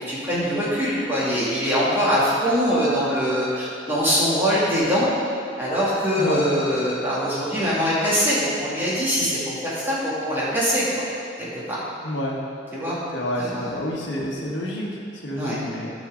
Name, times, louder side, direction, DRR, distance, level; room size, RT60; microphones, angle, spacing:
voice 1, 0.1-5.1 5.6-11.0 11.4-11.8 12.7-13.0 13.4-13.5 15.3-15.5, equal, 10° right, -10 dB, 2.5 m, -23 dB
voice 2, 6.2-6.5 12.0-12.4 13.1-15.9, equal, 70° left, -3 dB, 1.4 m, -29 dB
14.0 x 6.3 x 3.8 m, 2.6 s
head